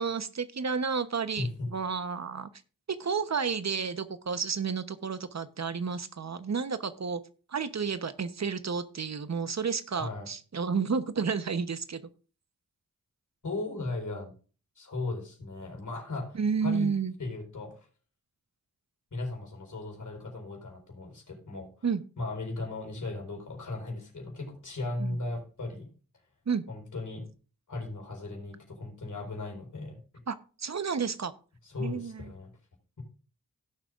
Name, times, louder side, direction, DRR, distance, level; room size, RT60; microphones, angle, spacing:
voice 1, 0.0-2.5 3.0-7.2 7.5-12.0 16.3-17.1 21.8-22.0 25.0-25.2 26.5-26.6 30.3-31.3 31.8-32.2, right 5 dB, 50° right, 11 dB, 1.0 m, -31 dB
voice 2, 1.4-1.7 10.0-10.3 13.4-14.3 14.8-16.9 17.2-17.7 19.1-21.7 22.2-25.9 26.7-27.3 27.7-30.0 31.6-32.5, left 2 dB, 60° left, 2 dB, 4.6 m, -37 dB
17.0 x 7.4 x 2.5 m, 0.36 s
cardioid pair, 55°, 34 cm